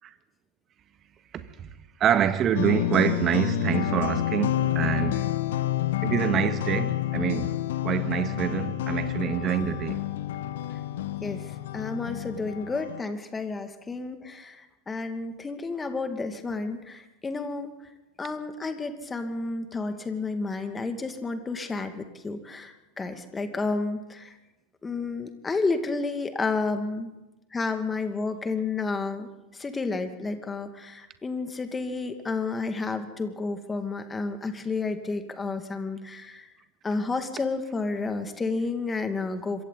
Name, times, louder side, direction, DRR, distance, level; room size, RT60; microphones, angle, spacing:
voice 1, 1.3-1.7 2.0-5.4 6.0-7.6 7.8-10.0, right 9 dB, 35° right, 1.7 m, -26 dB
sound 1, 2.6-13.0, left 13 dB, 70° left, 1.1 m, -29 dB
voice 2, 11.2-17.7 18.2-24.3 24.8-27.1 27.5-36.5 36.8-39.6, left 3 dB, 20° left, 2.3 m, -31 dB
26.5 x 23.5 x 4.1 m
hypercardioid pair, 85°, 0 cm